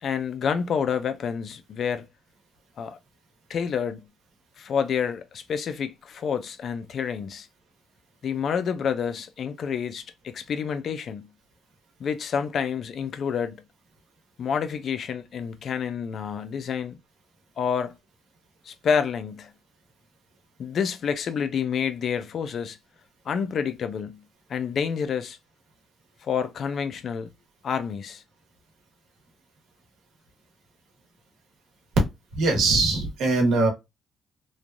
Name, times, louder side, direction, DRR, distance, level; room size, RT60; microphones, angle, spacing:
voice 1, 0.0-2.1 2.8-3.0 3.5-4.1 4.6-7.5 8.2-11.3 12.0-13.6 14.4-17.0 17.6-18.0 18.7-19.5 20.6-22.8 23.3-24.2 24.5-25.4 26.2-27.3 27.6-28.2, left 7 dB, 60° left, 0.4 m, -28 dB
voice 2, 32.3-33.7, right 3 dB, 85° right, 1.2 m, -21 dB
3.1 x 2.2 x 2.4 m
cardioid pair, 90°, 0 cm